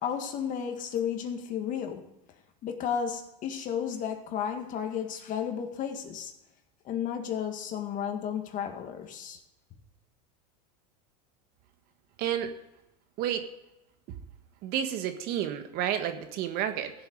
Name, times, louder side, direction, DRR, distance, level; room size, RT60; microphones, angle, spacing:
voice 1, 0.0-2.1 2.6-6.3 6.9-9.4, left 8 dB, 40° left, 5 dB, 1.9 m, -33 dB
voice 2, 12.2-12.5 13.2-13.4 14.6-16.9, right 10 dB, 50° right, 8 dB, 1.4 m, -30 dB
15.5 x 7.8 x 5.2 m, 0.92 s
supercardioid pair, 115°, 20 cm